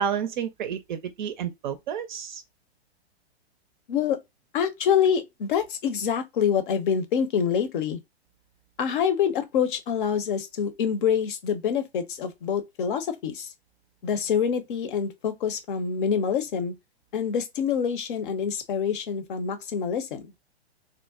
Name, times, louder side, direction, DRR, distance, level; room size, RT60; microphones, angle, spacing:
voice 1, 0.0-2.4, right 8 dB, 45° right, 0.5 m, -30 dB
voice 2, 4.5-8.0 8.8-13.5 14.0-16.7 17.1-20.3, left 7 dB, 50° left, 0.8 m, -26 dB
3.8 x 2.0 x 2.3 m
figure-of-eight pair, 115°, 33 cm